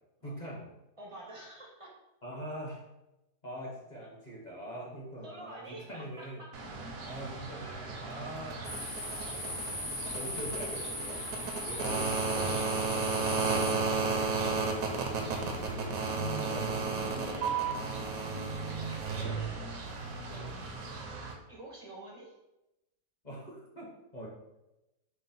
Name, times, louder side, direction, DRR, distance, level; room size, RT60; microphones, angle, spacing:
voice 1, 0.2-0.7 2.2-2.8 3.4-6.4 7.1-8.6 9.3-9.8 10.1-11.3 11.6-13.1 15.2-17.2 20.3-20.7 23.2-24.3, right 1 dB, 35° left, -4 dB, 0.9 m, -43 dB
voice 2, 1.0-1.9 4.2-4.4 5.2-6.5 7.6-7.9 10.4-10.6 18.6-19.7 21.5-22.3, right 2 dB, 35° right, -3 dB, 0.6 m, -48 dB
sound 1, 6.5-21.3, right 4 dB, 70° right, 1.1 m, -34 dB
sound 2, 8.6-15.7, left 1 dB, 75° left, 1.7 m, -40 dB
4.5 x 2.0 x 4.1 m, 0.94 s
omnidirectional pair, 1.6 m